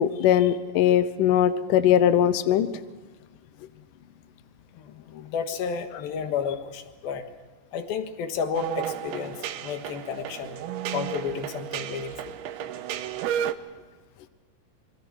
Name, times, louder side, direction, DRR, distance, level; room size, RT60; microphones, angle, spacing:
voice 1, 0.0-2.7, left 10 dB, 80° left, 11 dB, 1.9 m, -20 dB
voice 2, 4.7-7.2 7.7-10.6 10.9-12.3, left 6 dB, 65° left, 7 dB, 3.1 m, -32 dB
sound 1, 8.5-13.5, right 10 dB, 75° right, 2.6 m, -33 dB
27.5 x 22.5 x 6.3 m, 1.3 s
omnidirectional pair, 5.1 m